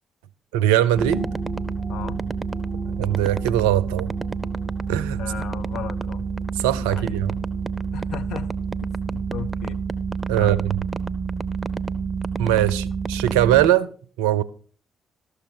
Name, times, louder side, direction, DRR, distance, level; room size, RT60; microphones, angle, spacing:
voice 1, 0.5-1.3 3.0-4.1 4.9-5.2 6.6-7.3 10.3-10.6 12.4-13.9 14.2-14.4, right 12 dB, 75° right, 0.4 m, -20 dB
sound 1, 0.9-11.5 12.0-12.1, equal, 40° left, 2.3 m, -42 dB
sound 2, 1.0-13.7, right 5 dB, 30° right, 0.6 m, -28 dB
voice 2, 1.9-2.2 5.2-6.3 6.8-7.2 7.9-8.5 8.8-9.8 10.4-10.6, left 9 dB, 65° left, 0.5 m, -36 dB
13.0 x 6.5 x 4.6 m
figure-of-eight pair, 40°, 0 cm